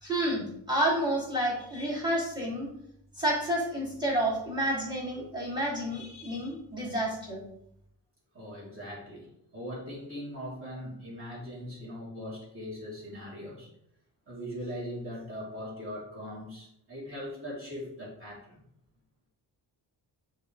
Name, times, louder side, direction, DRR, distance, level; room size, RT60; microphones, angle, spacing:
voice 1, 0.0-2.7 3.2-7.4, right 1 dB, 10° right, -3 dB, 2.9 m, -30 dB
voice 2, 8.3-13.7 14.3-18.6, equal, 30° right, -5 dB, 3.2 m, -40 dB
7.9 x 6.8 x 3.3 m, 0.73 s
wide cardioid pair, 165°, 43 cm